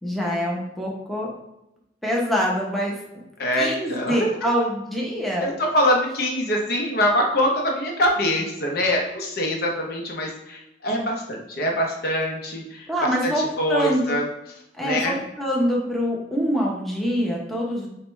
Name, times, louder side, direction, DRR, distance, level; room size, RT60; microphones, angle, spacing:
voice 1, 0.0-1.3 2.0-2.9 3.6-5.5 12.9-14.2 14.7-17.9, equal, ahead, -3 dB, 0.7 m, -25 dB
voice 2, 3.4-4.5 5.4-12.9 13.2-14.3 14.8-15.2, equal, 55° left, 0 dB, 0.8 m, -24 dB
6.6 x 2.2 x 3.1 m, 0.89 s
head